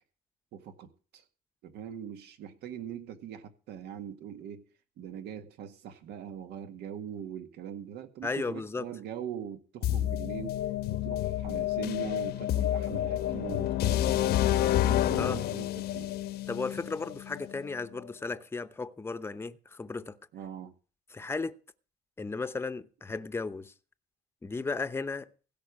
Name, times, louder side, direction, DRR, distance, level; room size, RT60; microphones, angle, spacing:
voice 1, 0.5-1.2 1.6-4.7 5.0-10.6 10.9-16.1 20.3-20.7, right 9 dB, 80° right, 1.9 m, -42 dB
voice 2, 8.2-8.8 15.2-15.4 16.5-20.2 21.1-21.5 22.2-23.7 24.4-25.3, left 4 dB, 15° left, 0.8 m, -35 dB
sound 1, 9.8-17.7, left 13 dB, 75° left, 1.0 m, -29 dB
16.5 x 5.7 x 8.4 m
cardioid pair, 110°, 17 cm